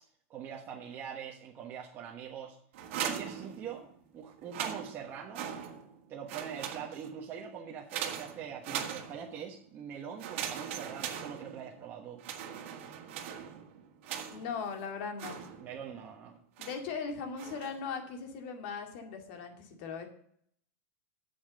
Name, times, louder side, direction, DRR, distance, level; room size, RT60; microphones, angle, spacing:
voice 1, 0.3-2.6 2.9-3.9 4.1-5.5 6.1-12.2 15.6-16.4, right 8 dB, 30° right, -1 dB, 1.3 m, -43 dB
sound 1, 2.7-4.0 4.4-6.0 6.3-7.2 7.9-9.5 10.2-11.8 12.2-14.6 15.2-15.9 16.6-16.9 17.4-17.9, right 9 dB, 60° right, 1.8 m, -40 dB
voice 2, 14.3-15.4 16.6-20.1, left 5 dB, 55° left, 4 dB, 2.2 m, -39 dB
8.6 x 7.3 x 6.8 m, 0.64 s
supercardioid pair, 150°, 8 cm